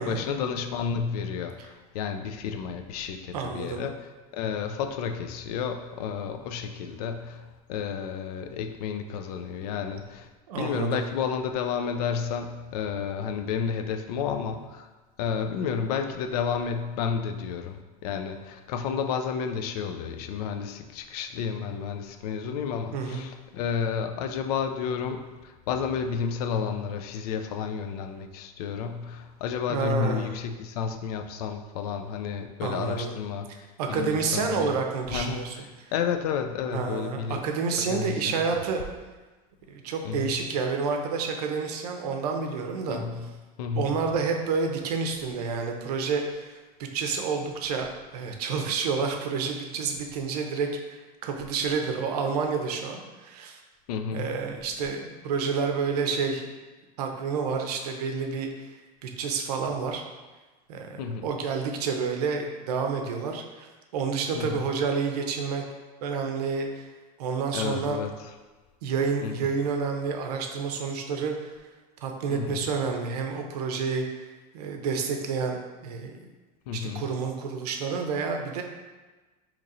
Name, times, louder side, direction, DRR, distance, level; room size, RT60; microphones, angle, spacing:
voice 1, 0.0-4.0 4.3-10.3 10.6-14.9 15.2-33.5 33.9-34.8 35.1-37.4 37.9-38.6 40.0-40.4 42.9-43.3 43.6-44.0 53.9-54.4 61.0-61.3 64.4-64.6 67.5-68.1 69.2-69.5 72.3-72.6 76.7-77.0, left 6 dB, 80° left, 6 dB, 0.4 m, -31 dB
voice 2, 3.3-3.8 10.5-11.0 22.9-23.2 29.7-30.3 32.6-33.1 33.8-35.9 36.7-38.8 39.7-43.0 43.7-46.5 46.8-47.9 48.1-53.6 54.1-56.5 57.0-58.7 59.0-60.0 60.7-65.6 66.0-66.9 67.2-68.0 68.8-71.5 72.0-74.2 74.5-76.2 76.7-78.6, right 5 dB, 90° right, 3 dB, 0.6 m, -29 dB
2.9 x 2.5 x 4.1 m, 1.2 s
supercardioid pair, 115°, 19 cm